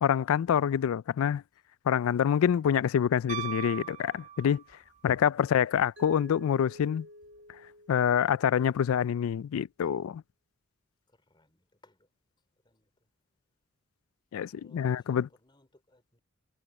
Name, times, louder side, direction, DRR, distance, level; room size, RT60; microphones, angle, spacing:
voice 1, 0.0-1.4 1.9-4.6 5.0-7.1 7.9-10.2 14.3-15.3, left 8 dB, 85° left, 0.3 m, -26 dB
Piano, 3.3-4.9 7.2-7.3, right 10 dB, 35° right, 0.9 m, -39 dB
Mallet percussion, 6.0-8.9, left 1 dB, 55° right, 1.2 m, -50 dB
voice 2, 11.3-12.0 12.7-12.9 14.4-15.2 15.4-16.2, left 2 dB, 20° left, 3.8 m, -64 dB
head